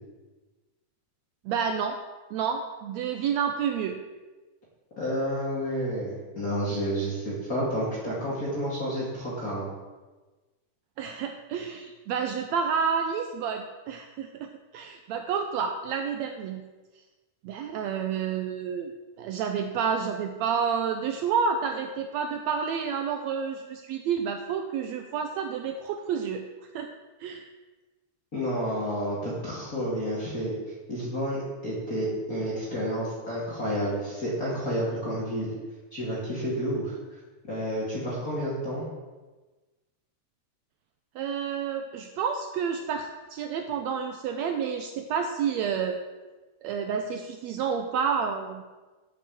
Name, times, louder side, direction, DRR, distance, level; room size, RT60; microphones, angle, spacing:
voice 1, 1.4-2.0 2.3-4.0 11.0-16.6 17.4-18.9 19.2-26.4 26.7-26.9 27.2-27.5 41.1-46.0 46.6-48.6, right 6 dB, 80° right, 5 dB, 1.7 m, -29 dB
voice 2, 5.0-9.7 28.3-30.5 30.9-35.5 35.9-37.2 37.5-38.9, equal, 30° left, -7 dB, 2.6 m, -30 dB
8.4 x 6.3 x 7.7 m, 1.2 s
omnidirectional pair, 3.5 m